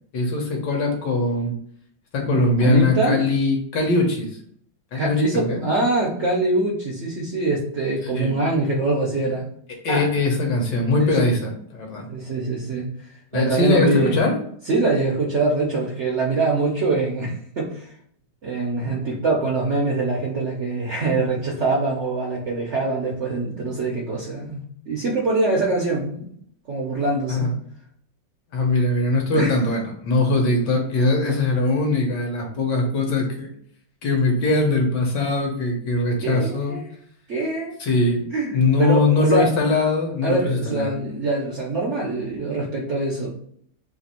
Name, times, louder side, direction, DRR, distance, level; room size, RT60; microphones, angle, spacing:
voice 1, 0.1-1.6 2.1-4.4 4.9-5.6 8.0-8.3 9.8-12.1 13.3-14.4 27.3-27.5 28.5-33.5 34.0-36.8 37.8-38.3 38.5-40.9, left 2 dB, 65° left, 1 dB, 1.4 m, -21 dB
voice 2, 2.2-3.2 4.9-9.5 9.9-10.1 11.0-11.3 12.1-12.9 13.3-14.2 14.7-17.9 18.4-26.3 26.7-27.5 29.3-29.6 36.2-36.8 37.3-37.7 38.3-39.5 40.2-43.4, right 2 dB, 85° right, -2 dB, 0.6 m, -24 dB
3.4 x 2.5 x 4.1 m, 0.64 s
omnidirectional pair, 2.1 m